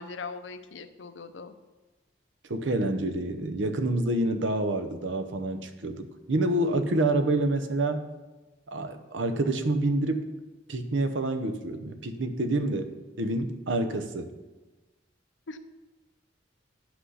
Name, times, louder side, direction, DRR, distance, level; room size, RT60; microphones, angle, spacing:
voice 1, 0.0-1.5 15.5-15.6, left 4 dB, 85° left, 9 dB, 0.6 m, -40 dB
voice 2, 2.5-8.0 8.7-10.3 10.7-14.3, right 2 dB, 85° right, 8 dB, 0.8 m, -28 dB
9.8 x 6.0 x 5.6 m, 1.2 s
head